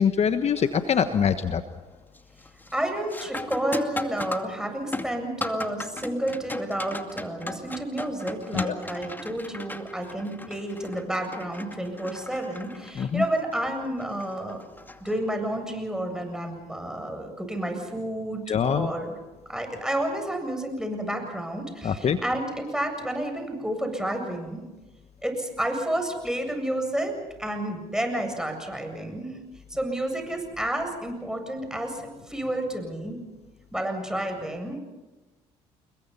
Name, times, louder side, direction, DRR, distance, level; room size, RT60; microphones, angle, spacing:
voice 1, 0.0-1.6 8.5-8.7 13.0-13.2 18.5-18.9 21.8-22.2, left 7 dB, 45° left, 9 dB, 1.3 m, -24 dB
sound 1, 0.6-1.0 1.4-1.8 2.1-15.7 18.2-18.3 19.1-19.3, left 1 dB, 15° left, 2.3 m, -38 dB
voice 2, 2.7-14.6 15.0-19.2 19.5-24.6 25.2-29.4 29.7-33.2 33.7-34.8, right 1 dB, 5° right, 5 dB, 7.8 m, -30 dB
29.5 x 22.0 x 5.7 m, 1.1 s
hypercardioid pair, 55°, 15 cm